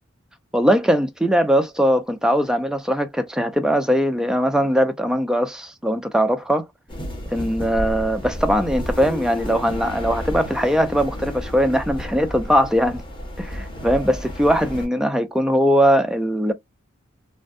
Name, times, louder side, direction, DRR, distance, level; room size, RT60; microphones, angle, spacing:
voice 1, 0.5-6.7 7.3-13.0 13.4-16.5, equal, 5° right, 0.4 m, -20 dB
sound 1, 6.9-14.9, left 1 dB, 25° left, 1.4 m, -32 dB
3.5 x 2.1 x 2.5 m
head